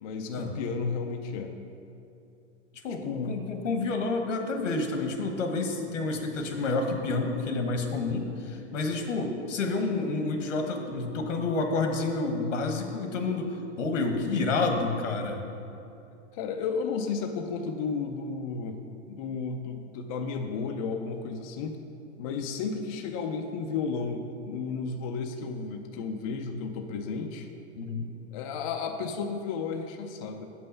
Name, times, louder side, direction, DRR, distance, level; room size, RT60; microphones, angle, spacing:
voice 1, 0.0-1.6 3.0-3.4 16.3-18.8 19.1-21.8 22.2-27.5 28.3-30.4, left 5 dB, 30° left, 5 dB, 0.4 m, -33 dB
voice 2, 2.8-15.4 27.8-28.1, left 3 dB, 85° left, 4 dB, 1.4 m, -29 dB
7.8 x 5.5 x 6.6 m, 2.7 s
hypercardioid pair, 150°, 36 cm